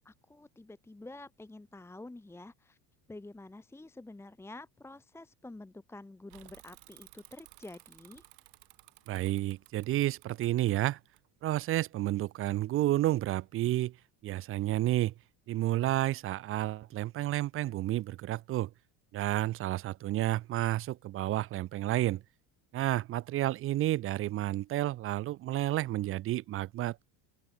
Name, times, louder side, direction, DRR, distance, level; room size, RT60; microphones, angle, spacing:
voice 1, 0.0-2.8 3.1-8.2, left 2 dB, 5° left, 1.3 m, -48 dB
Bicycle / Mechanisms, 6.3-11.8, right 26 dB, 65° right, 2.2 m, -57 dB
voice 2, 9.1-11.0 11.4-13.9 14.2-15.1 15.5-18.7 19.1-22.2 22.7-27.0, right 15 dB, 30° right, 0.5 m, -30 dB
open air
cardioid pair, 160°, 42 cm